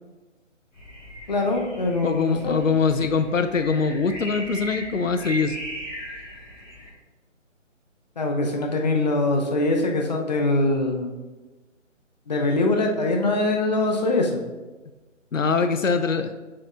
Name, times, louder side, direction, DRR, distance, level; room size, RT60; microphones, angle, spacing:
sound 1, 0.7-6.9, equal, 10° left, 1.6 m, -38 dB
voice 1, 1.3-2.6 8.2-11.2 12.3-14.4, left 2 dB, 35° left, 2 dB, 0.7 m, -23 dB
voice 2, 2.0-5.6 15.3-16.3, left 5 dB, 85° left, 9 dB, 0.6 m, -23 dB
7.4 x 6.2 x 2.4 m, 1.2 s
figure-of-eight pair, 150°, 38 cm